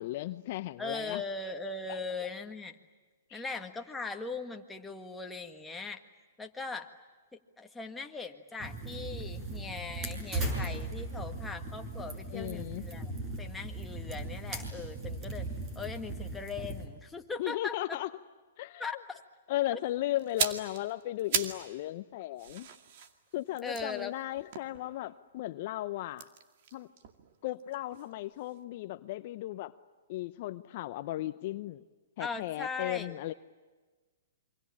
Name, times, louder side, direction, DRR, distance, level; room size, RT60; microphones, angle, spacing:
voice 1, 0.0-1.2 1.9-2.0 3.3-3.4 12.3-12.9 17.4-18.1 18.6-18.9 19.5-22.7 23.3-26.3 26.7-26.9 27.4-29.7 30.1-31.8 32.2-33.3, left 15 dB, 45° left, 12 dB, 0.8 m, -36 dB
voice 2, 0.8-2.8 3.3-6.0 6.4-6.9 7.6-13.1 13.4-15.5 15.8-18.0 18.8-19.2 23.6-24.1 32.2-33.2, left 4 dB, 5° left, 3 dB, 1.7 m, -39 dB
sound 1, 8.6-16.9, right 2 dB, 25° right, 6.5 m, -38 dB
sound 2, 20.2-21.7 22.0-25.3 26.1-28.1 28.4-28.6, right 8 dB, 50° right, 2.3 m, -37 dB
28.0 x 24.5 x 8.6 m, 1.3 s
hypercardioid pair, 145°, 0 cm